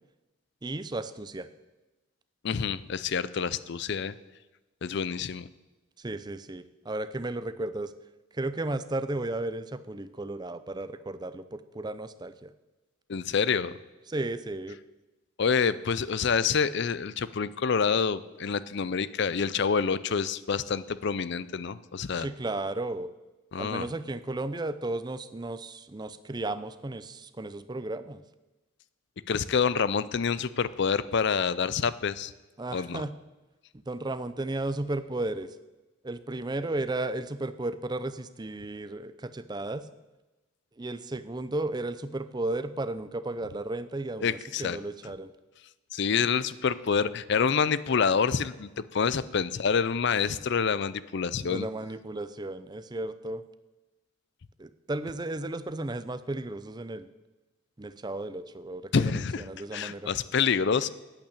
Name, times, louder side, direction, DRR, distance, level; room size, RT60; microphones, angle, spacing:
voice 1, 0.6-1.5 6.0-7.9 8.3-12.5 14.1-14.8 22.2-23.1 23.6-28.2 32.6-33.1 33.9-35.5 36.0-39.9 40.8-45.3 51.4-53.4 54.6-57.1 57.8-60.1, right 2 dB, 20° right, 12 dB, 0.5 m, -34 dB
voice 2, 2.4-4.1 4.8-5.5 13.1-13.7 15.4-22.3 23.5-23.9 29.3-32.3 32.7-33.0 44.2-44.8 45.9-51.7 58.9-59.4 59.7-60.9, left 6 dB, 55° left, 17 dB, 0.5 m, -27 dB
9.0 x 8.6 x 8.4 m, 1.1 s
head